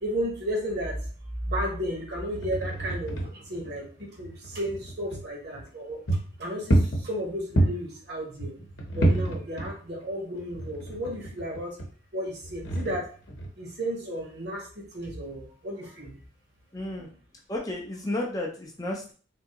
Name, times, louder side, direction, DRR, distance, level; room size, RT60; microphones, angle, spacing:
voice 1, 0.0-1.0 1.4-6.0 6.4-8.5 8.9-11.7 12.1-13.1 13.6-16.1 17.0-17.1, equal, 50° right, 0 dB, 1.1 m, -33 dB
sound 1, 2.2-5.3 5.7-5.8 6.1-7.9 8.4-10.1 10.4-11.9 12.4-13.7, right 1 dB, 60° left, 0.8 m, -28 dB
voice 2, 16.7-17.1 17.5-19.1, left 1 dB, 15° left, -1 dB, 0.5 m, -32 dB
3.5 x 2.7 x 2.9 m, 0.41 s
head